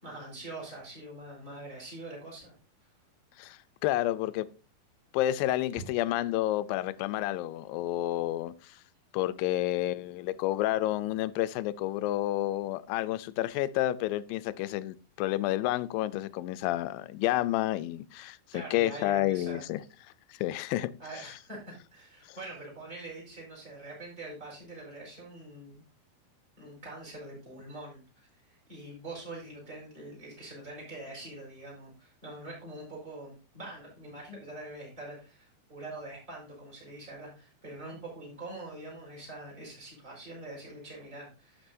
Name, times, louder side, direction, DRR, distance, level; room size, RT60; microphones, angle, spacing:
voice 1, 0.0-2.5 18.5-19.6 21.0-25.8 26.6-28.0 28.4-41.7, right 2 dB, 15° right, 4.7 m, -44 dB
voice 2, 3.4-4.5 5.1-8.7 9.1-19.8 20.3-20.9, left 15 dB, 80° left, 2.2 m, -30 dB
11.5 x 8.1 x 2.6 m
omnidirectional pair, 4.2 m